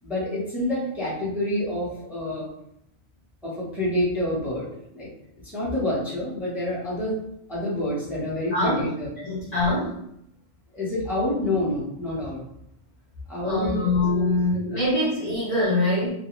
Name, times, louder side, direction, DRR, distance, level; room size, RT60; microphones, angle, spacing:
voice 1, 0.0-2.5 3.4-4.7 4.9-5.1 5.5-7.2 7.5-9.1 10.7-12.4 13.3-14.8, left 1 dB, ahead, -9 dB, 0.8 m, -28 dB
voice 2, 8.5-8.8 9.2-10.0 13.4-16.1, left 2 dB, 40° left, -9 dB, 0.8 m, -24 dB
2.4 x 2.2 x 3.0 m, 0.76 s
omnidirectional pair, 1.2 m